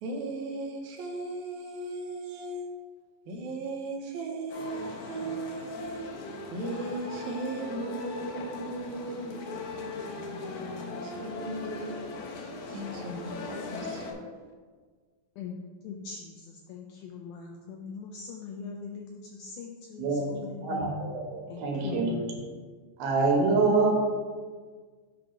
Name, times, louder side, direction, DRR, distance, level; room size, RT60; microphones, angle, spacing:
voice 1, 0.0-2.6 3.3-6.1 6.5-12.0 12.3-14.2, right 2 dB, 70° right, 0 dB, 1.9 m, -37 dB
sound 1, 4.5-14.1, left 3 dB, 75° left, 1.8 m, -39 dB
voice 2, 15.8-20.9 21.5-22.3, left 5 dB, 90° left, 1 dB, 1.7 m, -41 dB
voice 3, 20.0-22.1 23.0-23.9, right 3 dB, 85° right, 0 dB, 2.9 m, -26 dB
7.9 x 2.9 x 5.6 m, 1.5 s
omnidirectional pair, 4.2 m